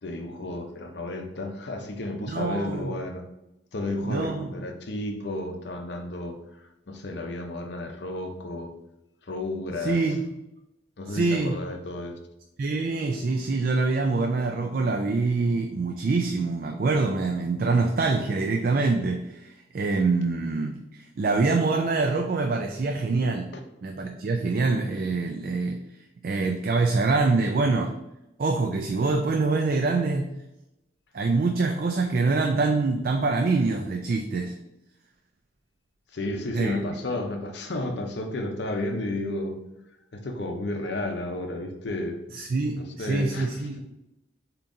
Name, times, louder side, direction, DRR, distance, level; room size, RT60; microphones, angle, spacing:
voice 1, 0.0-3.2 3.7-8.7 9.3-10.0 11.0-12.1 23.5-23.6 36.1-39.6 40.1-42.2 42.8-43.8, left 2 dB, 60° left, 4 dB, 0.6 m, -32 dB
voice 2, 2.3-2.9 4.0-4.5 9.8-10.2 11.1-11.6 12.6-23.5 23.8-25.8 26.2-27.9 28.4-30.3 31.1-34.5 36.5-36.7 42.3-43.8, right 3 dB, 45° right, 4 dB, 0.3 m, -25 dB
7.0 x 2.9 x 2.6 m, 0.91 s
head